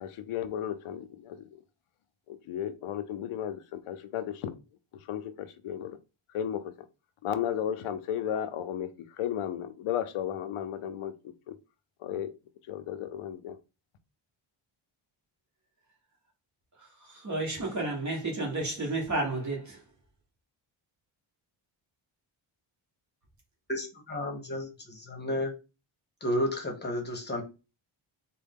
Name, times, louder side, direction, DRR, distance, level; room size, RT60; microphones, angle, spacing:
voice 1, 0.0-1.5 2.3-4.5 5.1-6.0 6.3-6.7 7.2-8.9 9.2-11.1 12.0-12.3 12.7-13.6, left 10 dB, 90° left, 0.6 m, -34 dB
voice 2, 16.8-19.8, right 2 dB, 35° right, 1.2 m, -32 dB
voice 3, 23.7-25.5 26.2-27.4, left 1 dB, 20° left, 1.0 m, -32 dB
3.6 x 2.2 x 3.5 m
wide cardioid pair, 135°, 49 cm